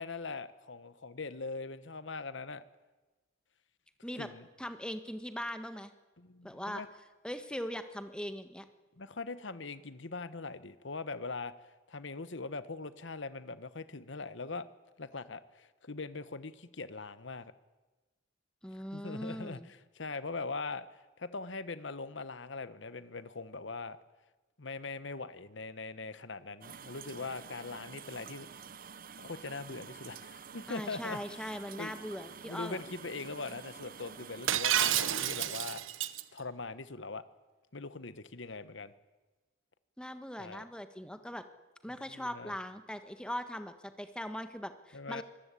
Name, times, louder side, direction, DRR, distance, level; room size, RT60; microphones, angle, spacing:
voice 1, 0.0-2.6 4.2-4.5 6.2-6.9 9.0-11.5 11.9-14.7 15.0-17.5 18.7-24.0 24.6-28.5 29.2-31.9 32.4-35.8 36.3-37.2 37.7-38.9 40.4-40.6 42.1-42.5 44.9-45.2, left 3 dB, 65° left, 14 dB, 1.2 m, -41 dB
voice 2, 4.6-5.9 6.4-6.8 7.2-8.6 18.6-19.7 30.7-32.8 40.0-41.4 41.8-45.2, equal, 5° left, 9 dB, 1.5 m, -40 dB
sound 1, 26.6-34.6, right 6 dB, 45° right, 0.8 m, -49 dB
Shatter, 34.5-36.2, right 11 dB, 85° right, 1.0 m, -29 dB
25.0 x 20.0 x 8.5 m, 1.2 s
head